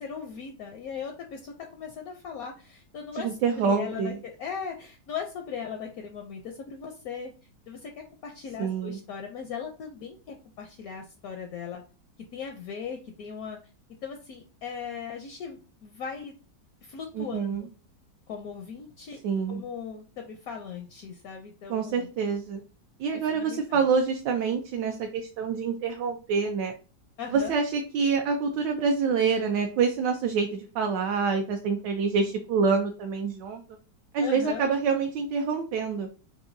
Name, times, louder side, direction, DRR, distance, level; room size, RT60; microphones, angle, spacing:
voice 1, 0.0-7.3 7.7-11.8 12.3-13.6 14.0-16.4 16.8-17.7 18.3-19.2 19.5-22.1 23.1-23.8 27.2-27.5 34.2-34.6, left 6 dB, 70° left, 3 dB, 0.9 m, -38 dB
voice 2, 3.1-4.2 8.6-9.0 17.1-17.7 19.2-19.6 21.7-22.6 23.0-26.7 27.3-33.6 34.1-36.1, right 5 dB, 80° right, 4 dB, 1.2 m, -26 dB
4.8 x 2.5 x 2.6 m, 0.34 s
omnidirectional pair, 1.9 m